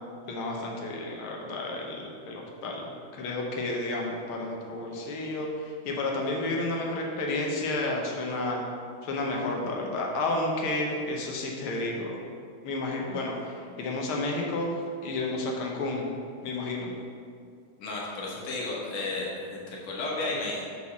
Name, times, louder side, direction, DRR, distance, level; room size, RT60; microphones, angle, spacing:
voice 1, 0.3-8.6 9.0-12.2 12.6-16.1 16.4-16.9, left 2 dB, 90° left, -1 dB, 1.8 m, -31 dB
voice 2, 17.8-20.6, left 2 dB, 45° left, -4 dB, 1.3 m, -33 dB
5.4 x 4.2 x 5.9 m, 2.2 s
omnidirectional pair, 2.3 m